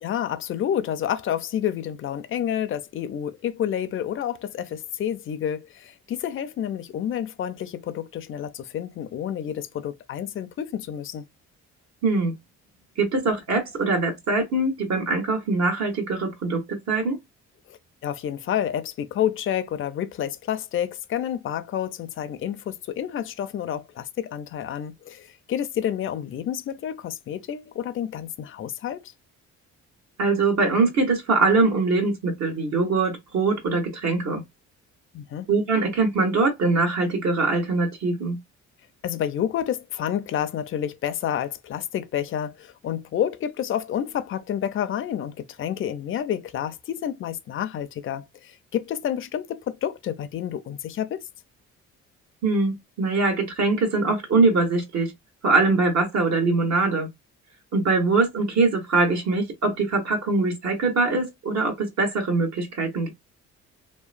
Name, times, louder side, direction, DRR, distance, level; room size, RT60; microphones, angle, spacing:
voice 1, 0.0-11.2 17.7-29.1 35.1-35.5 39.0-51.2, left 10 dB, 45° left, 0.4 m, -29 dB
voice 2, 12.0-12.3 13.0-16.6 16.9-17.2 30.2-34.4 35.5-38.4 52.4-55.1 55.4-57.1 57.7-63.1, right 3 dB, 65° right, 1.3 m, -22 dB
2.9 x 2.1 x 2.4 m
cardioid pair, 90°, 30 cm